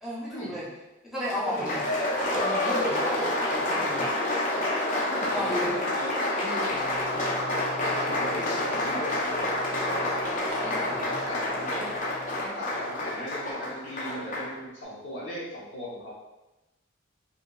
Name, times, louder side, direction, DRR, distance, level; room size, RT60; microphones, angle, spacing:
voice 1, 0.0-0.7 1.0-1.9 2.2-4.1 5.3-5.7 10.6-11.2, equal, ahead, -8 dB, 0.6 m, -34 dB
Applause, 1.3-14.5, left 1 dB, 40° left, 0.5 m, -28 dB
voice 2, 5.1-6.9 7.8-9.6 9.8-10.1 10.4-11.9 12.4-16.1, equal, 75° left, -6 dB, 0.7 m, -38 dB
sound 1, 6.7-12.5, right 2 dB, 45° right, 0.3 m, -47 dB
2.8 x 2.2 x 2.2 m, 1.0 s
head